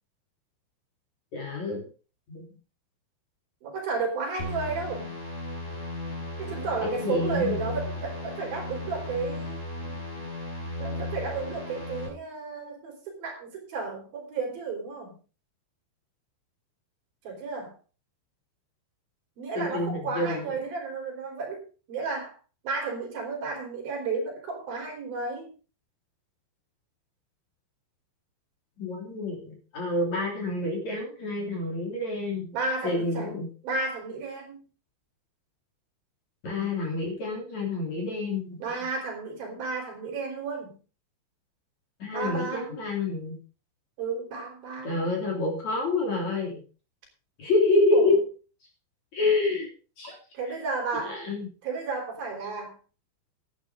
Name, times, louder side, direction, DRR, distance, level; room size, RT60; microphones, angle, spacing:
voice 1, 1.3-1.8 2.3-2.4 6.8-7.6 19.6-20.5 28.8-32.5 32.8-33.5 36.4-38.6 42.0-43.4 44.8-46.6 47.4-48.2 49.1-49.7 50.0-50.1 51.1-51.5, left 2 dB, 40° left, 1 dB, 4.1 m, -27 dB
voice 2, 3.6-5.1 6.4-9.7 10.8-15.1 17.2-17.7 19.4-21.6 21.9-22.3 22.6-25.5 32.5-33.4 33.6-34.6 38.6-40.8 42.1-42.7 44.0-45.1 47.9-48.2 50.3-51.2 51.6-52.8, right 4 dB, 55° right, 2 dB, 4.8 m, -32 dB
sound 1, 4.4-12.1, left 2 dB, 15° left, 5.4 m, -36 dB
11.5 x 9.6 x 5.0 m, 0.36 s
omnidirectional pair, 5.4 m